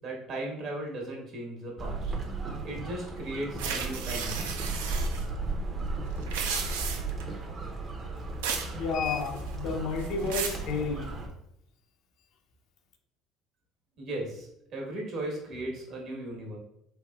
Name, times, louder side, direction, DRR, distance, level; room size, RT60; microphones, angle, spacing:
voice 1, 0.0-2.1 2.6-4.6 14.0-16.6, right 1 dB, 60° right, 1.1 m, -37 dB
sound 1, 1.8-11.3, right 3 dB, 40° right, 0.6 m, -35 dB
sound 2, 3.6-5.2 6.2-7.2 8.4-8.7 9.1-9.5 10.0-10.6, right 6 dB, 90° right, 0.3 m, -34 dB
voice 2, 8.8-11.2, left 4 dB, 70° left, 0.5 m, -31 dB
3.3 x 2.7 x 2.3 m
supercardioid pair, 80°, 0 cm